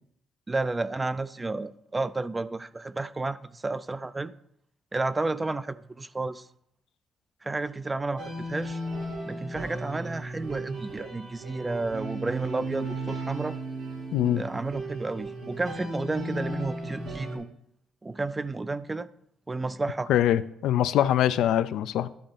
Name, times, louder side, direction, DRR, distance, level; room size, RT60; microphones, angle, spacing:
voice 1, 0.5-4.3 4.9-6.5 7.4-8.8 9.2-13.6 14.4-17.5 18.0-19.1 19.5-20.1, right 3 dB, 20° right, 0.3 m, -31 dB
sound 1, 8.2-17.4, right 1 dB, 90° right, 2.2 m, -35 dB
voice 2, 14.1-14.4 20.1-22.1, left 11 dB, 85° left, 0.3 m, -23 dB
11.5 x 3.9 x 3.8 m
cardioid pair, 90°, 0 cm